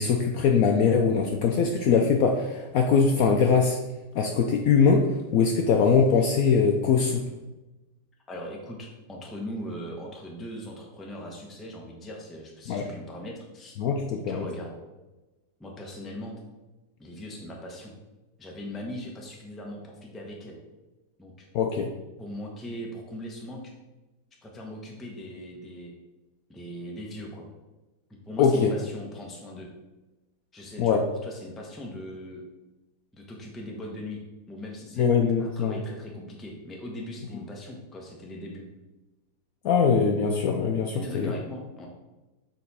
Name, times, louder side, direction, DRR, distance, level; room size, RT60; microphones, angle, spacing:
voice 1, 0.0-3.8 4.1-5.1 5.3-7.2 12.7-12.9 13.8-14.5 21.5-21.9 28.4-28.7 30.8-31.0 35.0-35.8 39.6-41.3, left 5 dB, 70° left, 3 dB, 0.9 m, -22 dB
voice 2, 8.3-13.8 14.3-14.8 15.6-16.4 17.0-17.9 18.4-20.6 21.2-21.5 22.2-23.7 24.4-25.9 26.5-27.5 28.3-29.7 30.5-32.4 33.1-34.2 34.5-35.1 35.4-38.6 40.9-41.9, equal, ahead, -1 dB, 0.7 m, -39 dB
6.7 x 4.1 x 4.1 m, 1.1 s
omnidirectional pair, 1.8 m